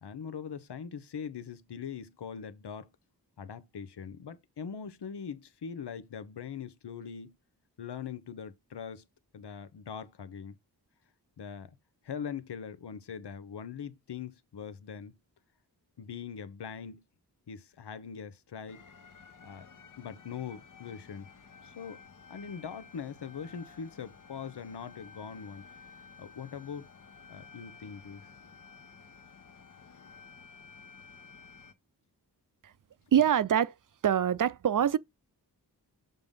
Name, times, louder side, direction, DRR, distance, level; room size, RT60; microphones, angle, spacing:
voice 1, 0.0-2.9 3.4-7.3 7.8-9.0 9.3-10.6 11.4-11.7 12.0-15.1 16.0-17.0 17.5-18.9 19.4-21.3 21.6-22.0 22.3-25.6 26.2-26.9 27.3-28.2, left 7 dB, 85° left, 1.0 m, -42 dB
sound 1, 18.7-31.7, left 5 dB, 50° left, 1.1 m, -53 dB
voice 2, 33.1-33.8 34.0-35.0, right 9 dB, 50° right, 0.5 m, -24 dB
6.9 x 3.7 x 5.3 m
wide cardioid pair, 110°, 40 cm